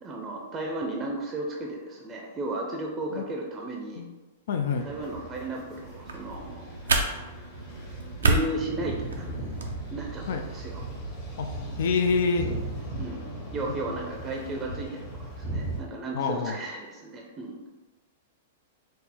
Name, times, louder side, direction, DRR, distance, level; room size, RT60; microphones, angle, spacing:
voice 1, 0.0-4.1 4.8-7.3 7.7-7.8 8.2-9.6 9.9-10.8 13.0-17.6, right 2 dB, 25° right, 0 dB, 0.6 m, -35 dB
voice 2, 4.5-4.9 10.3-10.4 11.4-11.5 11.8-12.5 16.1-16.6, left 5 dB, 65° left, 6 dB, 0.4 m, -26 dB
sound 1, 4.7-15.8, right 2 dB, 35° left, 1.2 m, -37 dB
sound 2, 5.8-9.7, right 3 dB, 80° right, 0.5 m, -30 dB
4.2 x 2.0 x 3.5 m, 1.2 s
hypercardioid pair, 110°, 0 cm